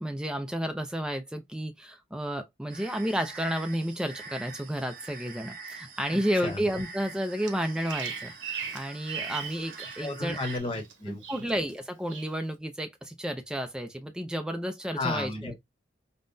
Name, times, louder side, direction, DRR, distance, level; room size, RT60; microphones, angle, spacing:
voice 1, 0.0-10.4 11.1-15.5, equal, 5° right, 0.4 m, -32 dB
sound 1, 2.7-10.6, right 4 dB, 50° right, 0.9 m, -44 dB
voice 2, 6.1-6.6 10.0-11.4 14.9-15.6, left 2 dB, 30° left, 0.9 m, -34 dB
Bird vocalization bird call bird song, 7.5-10.0 10.3-10.9 11.2-11.7 12.1-12.4, right 7 dB, 90° right, 0.9 m, -38 dB
5.4 x 2.1 x 2.6 m
head